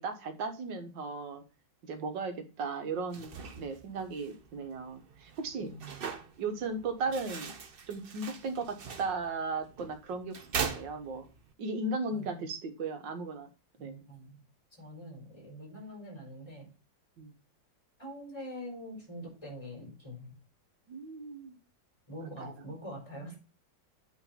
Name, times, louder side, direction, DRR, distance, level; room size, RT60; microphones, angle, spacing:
voice 1, 0.0-1.4 1.8-5.7 6.4-7.5 7.9-10.4 10.7-11.3 11.6-13.5 13.8-14.0 17.2-17.3 20.9-21.6 22.2-22.6, right 3 dB, 75° right, 6 dB, 1.9 m, -36 dB
sound 1, 3.0-11.5, right 6 dB, 50° right, 0.6 m, -42 dB
voice 2, 5.6-6.0 12.1-12.4 13.8-14.4 14.7-16.7 18.0-20.3 22.1-23.4, equal, 15° left, -1 dB, 4.5 m, -44 dB
8.5 x 3.9 x 5.6 m, 0.34 s
omnidirectional pair, 2.0 m